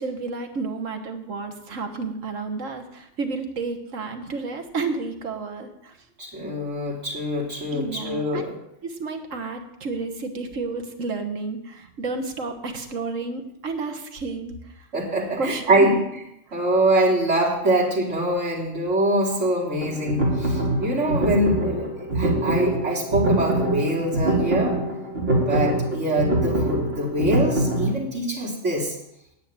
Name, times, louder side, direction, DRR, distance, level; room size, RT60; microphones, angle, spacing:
voice 1, 0.0-6.0 7.7-8.5 8.8-14.6 15.4-16.0, right 3 dB, 90° right, 5 dB, 1.8 m, -31 dB
voice 2, 6.2-8.5 14.9-16.0 16.5-24.8 25.4-29.0, right 1 dB, 70° right, -5 dB, 3.3 m, -24 dB
sound 1, 19.8-27.9, right 1 dB, 50° right, 3.2 m, -24 dB
9.4 x 7.6 x 9.4 m, 0.81 s
omnidirectional pair, 1.3 m